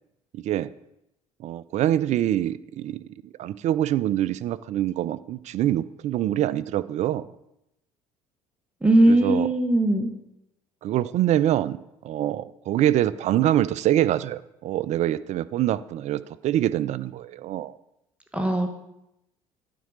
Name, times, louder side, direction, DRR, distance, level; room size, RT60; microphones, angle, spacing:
voice 1, 0.3-0.7 1.4-3.0 3.4-7.3 9.1-9.5 10.8-11.8 12.0-17.7, right 12 dB, 40° right, 16 dB, 0.4 m, -25 dB
voice 2, 8.8-10.1 18.3-18.7, right 1 dB, 5° right, 3 dB, 1.1 m, -19 dB
9.3 x 4.6 x 6.3 m, 0.84 s
figure-of-eight pair, 55°, 18 cm